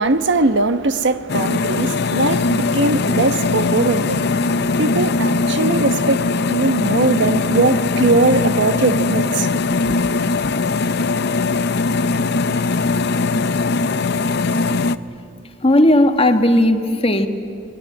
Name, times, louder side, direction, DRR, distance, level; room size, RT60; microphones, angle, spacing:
voice 1, 0.0-6.2 6.5-9.5 9.8-10.1, right 3 dB, 60° right, 1.0 m, -20 dB
sound 1, 1.3-15.0, left 3 dB, 55° left, 0.7 m, -20 dB
voice 2, 15.6-17.3, left 1 dB, 30° left, 1.5 m, -15 dB
28.0 x 21.0 x 9.6 m
head